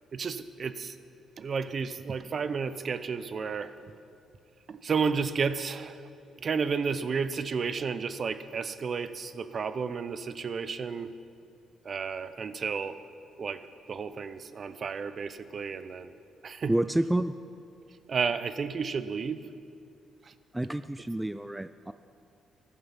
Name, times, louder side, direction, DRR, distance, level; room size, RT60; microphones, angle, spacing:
voice 1, 0.1-1.0 1.4-3.7 4.7-6.0 6.4-11.1 11.8-13.0 13.4-13.6 13.9-16.1 16.4-16.8 18.1-19.4 20.2-20.3, right 5 dB, 45° right, 13 dB, 0.7 m, -32 dB
voice 2, 16.7-17.3 20.5-21.9, right 1 dB, 10° right, 12 dB, 0.4 m, -29 dB
14.5 x 11.0 x 5.7 m, 2.4 s
cardioid pair, 90°, 0 cm